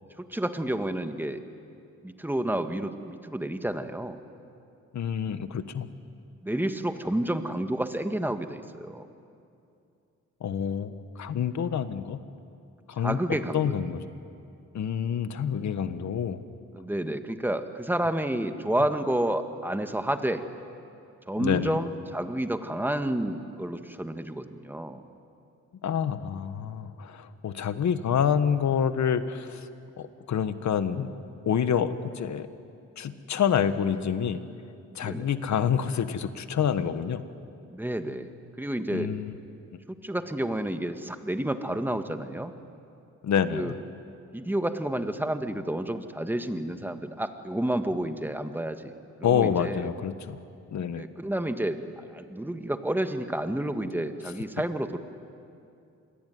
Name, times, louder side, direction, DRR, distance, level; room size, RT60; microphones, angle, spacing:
voice 1, 0.2-1.4 2.0-4.2 6.4-9.1 13.0-13.8 16.7-20.4 21.3-25.0 35.0-35.3 37.7-38.3 38.6-39.1 40.0-42.5 43.5-43.7 44.3-48.9 49.2-49.9 51.0-55.0, right 1 dB, 5° right, 7 dB, 1.8 m, -30 dB
voice 2, 4.9-5.9 10.4-12.2 12.9-14.1 14.7-16.4 21.4-21.7 25.8-29.7 30.0-31.1 31.4-32.5 33.0-34.4 34.9-37.2 38.9-39.4 43.2-43.7 49.2-50.4 50.7-51.0, left 8 dB, 65° left, 11 dB, 1.5 m, -27 dB
27.5 x 21.5 x 9.5 m, 2.6 s
cardioid pair, 85°, 30 cm